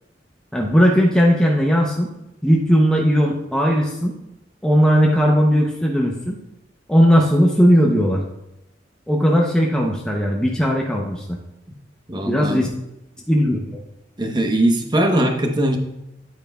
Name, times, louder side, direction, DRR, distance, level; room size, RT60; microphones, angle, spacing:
voice 1, 0.5-2.1 2.4-4.2 4.6-6.4 6.9-8.2 9.1-11.4 12.2-12.7 13.3-13.6, equal, 5° left, -1 dB, 0.7 m, -17 dB
voice 2, 12.1-12.6 14.2-15.8, right 1 dB, 25° right, 4 dB, 0.9 m, -20 dB
9.5 x 8.6 x 2.3 m, 0.87 s
head